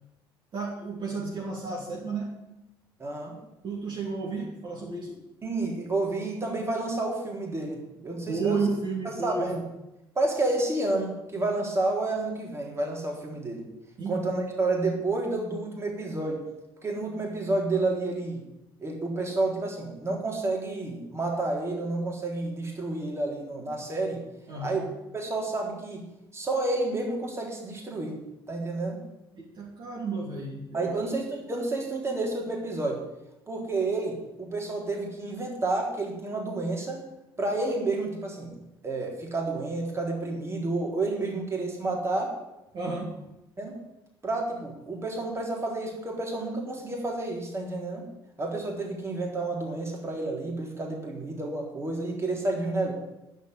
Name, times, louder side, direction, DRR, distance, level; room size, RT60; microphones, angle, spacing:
voice 1, 0.5-2.3 3.6-5.2 8.3-9.6 14.0-14.2 24.5-24.8 29.3-31.0 42.7-43.1, right 3 dB, 35° right, -3 dB, 3.0 m, -32 dB
voice 2, 3.0-3.4 5.4-8.6 9.2-9.6 10.2-13.7 14.1-16.4 16.8-18.4 18.8-24.2 24.6-24.8 25.1-26.1 26.3-28.2 28.5-29.0 30.7-33.0 33.5-37.0 37.4-42.3 43.6-43.8 44.2-48.0 48.4-52.9, right 2 dB, 20° right, 0 dB, 3.6 m, -30 dB
10.0 x 7.5 x 9.5 m, 0.93 s
figure-of-eight pair, 60°, 13 cm